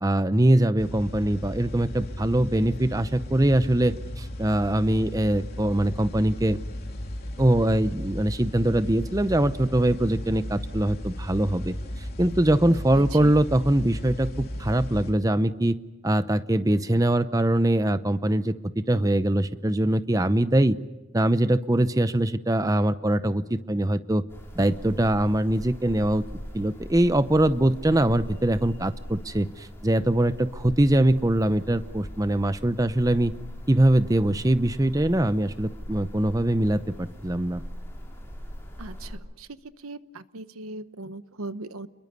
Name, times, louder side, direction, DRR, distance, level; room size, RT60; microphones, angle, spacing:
voice 1, 0.0-6.6 7.4-11.7 12.2-15.8 16.0-18.5 18.9-20.8 21.1-24.2 24.6-26.2 26.5-33.3 33.7-37.6, right 1 dB, 15° right, 13 dB, 0.7 m, -22 dB
sound 1, 0.8-15.1, equal, 45° left, 3.3 m, -35 dB
voice 2, 13.0-13.3 38.8-39.5 39.8-41.9, right 2 dB, 80° right, 13 dB, 1.0 m, -39 dB
sound 2, 24.3-39.1, equal, 10° left, 5.1 m, -40 dB
29.5 x 22.0 x 6.8 m, 1.1 s
head